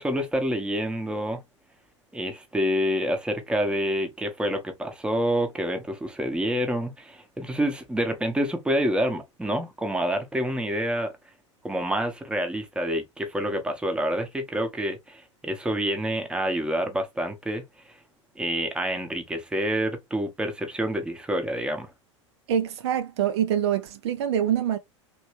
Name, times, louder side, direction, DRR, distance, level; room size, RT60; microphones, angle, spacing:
voice 1, 0.0-1.4 2.1-11.1 11.6-18.0 18.4-21.9, equal, 5° right, 0.9 m, -27 dB
voice 2, 22.5-24.8, right 9 dB, 60° right, 0.5 m, -25 dB
3.1 x 3.0 x 3.0 m
figure-of-eight pair, 90°, 16 cm